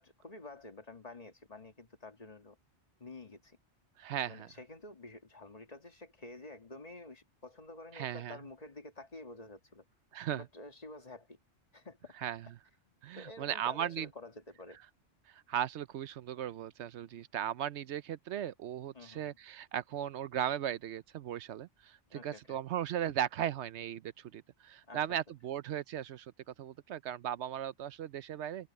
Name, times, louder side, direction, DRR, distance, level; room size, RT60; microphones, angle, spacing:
voice 1, 0.0-2.6 3.0-3.6 4.3-9.9 10.3-11.4 11.7-12.1 12.8-14.8 18.9-19.4 22.1-22.6 24.9-25.2, left 2 dB, 35° left, 1.9 m, -50 dB
voice 2, 4.0-4.5 7.9-8.4 10.1-10.4 12.2-12.5 13.0-14.1 15.3-26.3 26.6-28.7, right 10 dB, 80° right, 0.9 m, -37 dB
open air
omnidirectional pair, 1.2 m